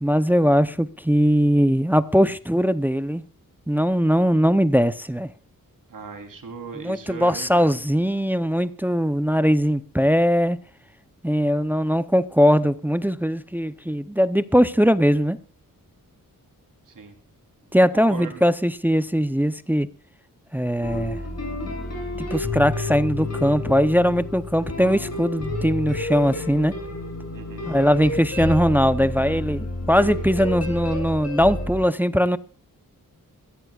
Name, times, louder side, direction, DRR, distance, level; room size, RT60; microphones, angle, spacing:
voice 1, 0.0-3.2 3.7-5.3 6.8-10.6 11.2-15.4 17.7-19.9 20.5-21.2 22.3-26.7 27.7-32.4, equal, 5° right, 0.6 m, -20 dB
voice 2, 5.9-7.7 16.9-17.1 17.8-18.4 27.3-27.7, right 5 dB, 65° right, 3.3 m, -38 dB
sound 1, 20.8-31.8, left 2 dB, 45° left, 7.0 m, -30 dB
22.0 x 16.0 x 2.4 m
wide cardioid pair, 140°, 35 cm